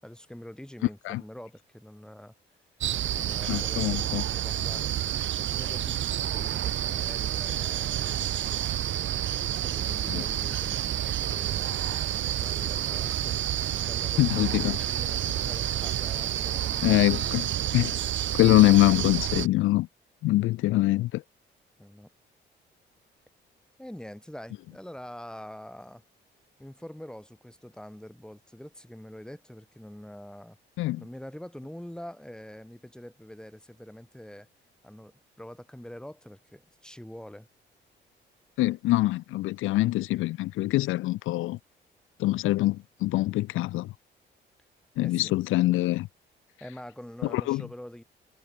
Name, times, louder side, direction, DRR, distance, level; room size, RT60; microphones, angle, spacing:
voice 1, 0.0-2.3 3.1-4.9 5.4-8.1 9.5-17.0 21.8-22.1 23.8-26.0 26.6-30.6 31.0-34.5 34.8-35.1 35.4-37.5 45.0-45.3 46.6-48.0, equal, 5° left, 7.2 m, -45 dB
sound 1, 2.8-19.5, right 11 dB, 70° right, 2.2 m, -29 dB
voice 2, 3.5-4.2 10.1-10.2 14.2-14.8 16.8-17.9 18.3-19.9 20.2-21.2 30.8-31.0 38.6-41.6 42.2-43.9 45.0-46.1 47.3-47.6, left 17 dB, 90° left, 0.8 m, -24 dB
cardioid pair, 90°, 20 cm